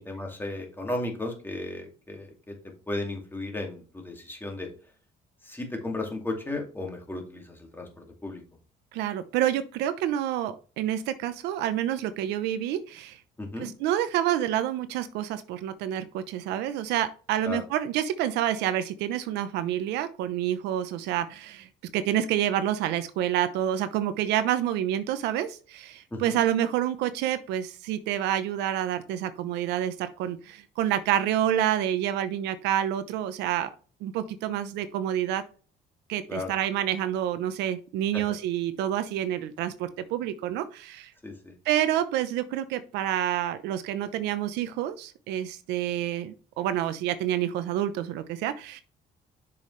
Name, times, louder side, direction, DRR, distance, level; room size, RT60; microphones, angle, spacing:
voice 1, 0.0-2.6 2.9-4.7 5.4-8.4 13.4-13.7 17.4-17.6 26.1-26.4 36.3-36.5 38.1-38.2 41.2-41.5, left 2 dB, 10° left, 2 dB, 2.4 m, -35 dB
voice 2, 8.9-13.2 13.6-33.7 34.0-35.4 36.1-41.1 41.6-48.8, right 11 dB, 90° right, 12 dB, 0.8 m, -28 dB
6.7 x 5.6 x 3.2 m, 0.37 s
cardioid pair, 110°, 17 cm